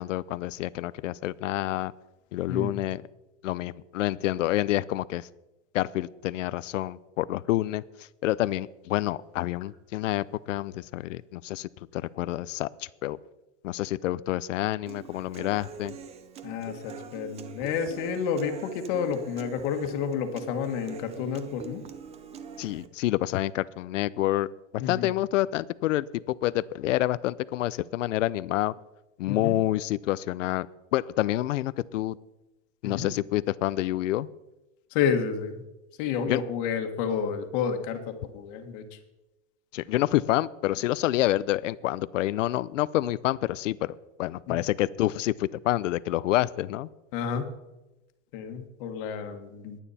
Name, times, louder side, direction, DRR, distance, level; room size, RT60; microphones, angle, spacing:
voice 1, 0.0-1.9 2.3-3.0 3.4-5.3 5.7-13.2 13.6-15.9 22.6-24.5 24.7-28.7 29.2-30.7 30.9-32.2 32.8-34.3 36.3-36.4 39.7-46.9, left 15 dB, 80° left, 20 dB, 0.7 m, -28 dB
Human voice / Acoustic guitar, 14.9-22.9, right 7 dB, 15° right, 0.7 m, -44 dB
voice 2, 16.4-21.8 24.8-25.1 29.3-29.6 32.8-33.1 34.9-35.6 36.0-39.0 47.1-47.5 48.3-49.8, left 7 dB, 45° left, 6 dB, 1.6 m, -30 dB
21.5 x 9.1 x 4.2 m, 1.0 s
supercardioid pair, 160°, 37 cm